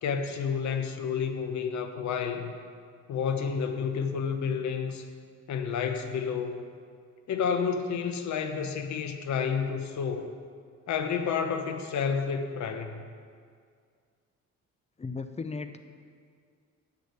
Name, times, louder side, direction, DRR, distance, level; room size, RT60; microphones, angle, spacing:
voice 1, 0.0-2.6 3.1-5.0 5.5-6.6 7.3-10.3 10.9-13.0, left 6 dB, 70° left, 7 dB, 1.0 m, -30 dB
voice 2, 15.0-15.8, left 4 dB, 20° left, 9 dB, 0.6 m, -36 dB
8.4 x 6.2 x 8.1 m, 2.1 s
cardioid pair, 90°, 30 cm